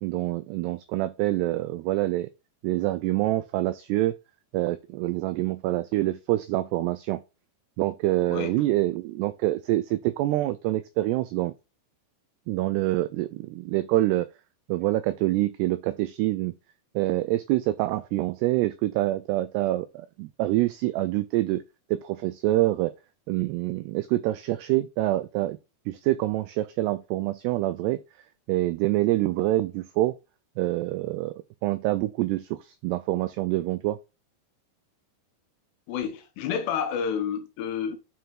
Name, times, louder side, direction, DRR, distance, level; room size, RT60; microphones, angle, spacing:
voice 1, 0.0-2.3 2.6-4.2 4.5-7.2 7.8-11.5 12.5-14.3 14.7-16.5 17.0-21.6 21.9-22.9 23.3-25.6 25.9-28.0 28.5-30.1 30.6-34.0, right 16 dB, 90° right, 2.3 m, -26 dB
voice 2, 35.9-38.0, left 7 dB, 75° left, 2.9 m, -29 dB
9.1 x 4.6 x 3.8 m
omnidirectional pair, 5.3 m